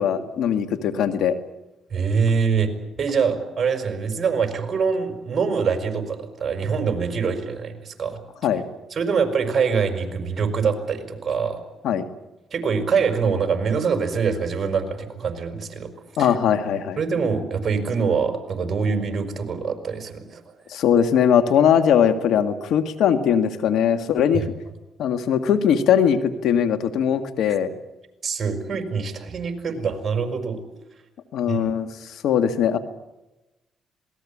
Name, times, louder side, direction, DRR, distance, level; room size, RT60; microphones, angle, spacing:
voice 1, 0.0-1.4 8.4-8.6 11.8-12.0 16.2-17.0 20.7-24.4 25.0-27.7 31.3-31.9 32.2-32.8, left 8 dB, 80° left, 9 dB, 1.9 m, -20 dB
voice 2, 1.9-2.7 3.0-8.2 8.9-11.6 12.5-15.9 16.2-16.3 17.0-20.4 24.3-24.5 28.2-30.6 31.5-31.6, right 5 dB, 40° right, 6 dB, 5.5 m, -24 dB
27.0 x 19.5 x 8.6 m, 1.0 s
cardioid pair, 90°, 0 cm